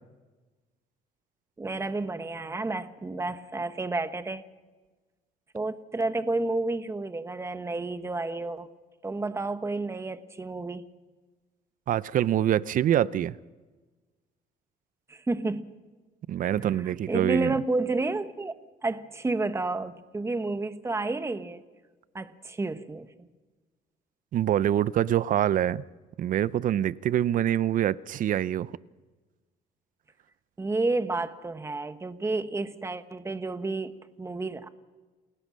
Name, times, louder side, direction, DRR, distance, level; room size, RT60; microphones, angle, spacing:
voice 1, 1.6-4.4 5.5-8.7 9.0-10.8 15.1-15.7 16.6-18.6 18.8-21.6 22.1-23.1 30.6-34.7, right 3 dB, 15° right, 1.2 m, -30 dB
voice 2, 11.9-13.3 16.3-17.5 24.3-25.8 26.2-28.7, right 11 dB, 50° right, 0.5 m, -25 dB
28.5 x 16.5 x 6.3 m
cardioid pair, 110°, 17 cm